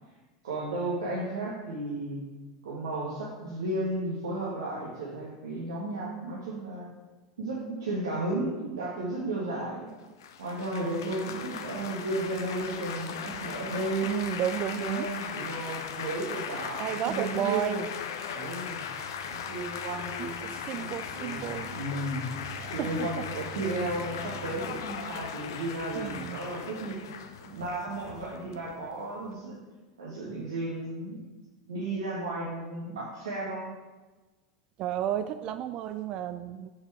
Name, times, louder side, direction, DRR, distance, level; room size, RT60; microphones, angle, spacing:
voice 1, 0.4-2.2 2.6-6.9 7.4-9.9 10.4-14.1 14.7-17.8 18.3-18.8 19.3-20.4 20.7-22.3 22.6-27.0 27.4-29.6 30.0-31.2 31.6-33.7, right 2 dB, 75° right, -6 dB, 1.7 m, -34 dB
Laughter / Applause / Chatter, 10.2-29.3, left 7 dB, 65° left, 0.7 m, -38 dB
voice 2, 11.0-11.5 14.0-15.1 16.8-17.8 20.2-21.8 22.5-23.1 26.0-26.4 34.8-36.7, right 10 dB, 45° right, 10 dB, 0.3 m, -33 dB
sound 1, 18.3-25.1, right 7 dB, 15° right, 1.3 m, -48 dB
6.7 x 6.3 x 4.6 m, 1.2 s
figure-of-eight pair, 80°, 2 cm